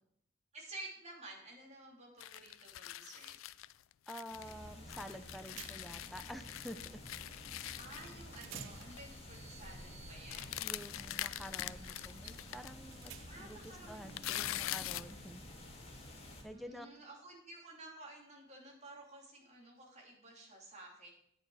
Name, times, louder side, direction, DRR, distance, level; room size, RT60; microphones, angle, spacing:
voice 1, 0.5-3.4 7.8-10.6 13.3-14.8 16.5-21.1, right 2 dB, 35° right, -1 dB, 2.9 m, -52 dB
sound 1, 2.2-4.5 4.9-8.6 8.8-9.0 9.3-9.7 10.3-12.7 13.1-13.2 13.5-15.1, left 14 dB, 80° left, 0.4 m, -43 dB
voice 2, 4.1-7.0 10.6-15.4 15.7-16.1 16.4-16.9, equal, ahead, 7 dB, 0.5 m, -49 dB
sound 2, 4.3-16.4, left 1 dB, 30° left, 2.3 m, -51 dB
sound 3, 5.1-5.2 5.6-6.1 7.9-8.0 8.3-13.6, right 12 dB, 75° right, 0.6 m, -56 dB
9.9 x 8.8 x 4.8 m, 0.71 s
head